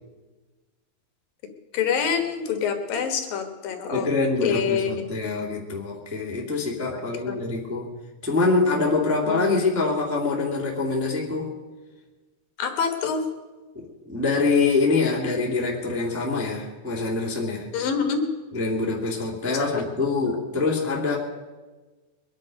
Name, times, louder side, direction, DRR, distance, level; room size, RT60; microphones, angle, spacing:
voice 1, 1.7-4.1 4.4-5.1 6.9-7.4 9.3-9.6 12.6-13.2 17.7-18.2 19.5-19.6, left 6 dB, 70° left, 5 dB, 3.1 m, -26 dB
voice 2, 3.9-7.9 8.2-11.5 13.7-17.7 18.5-21.2, left 3 dB, 5° right, -3 dB, 1.3 m, -25 dB
23.0 x 9.9 x 5.3 m, 1.2 s
omnidirectional pair, 4.4 m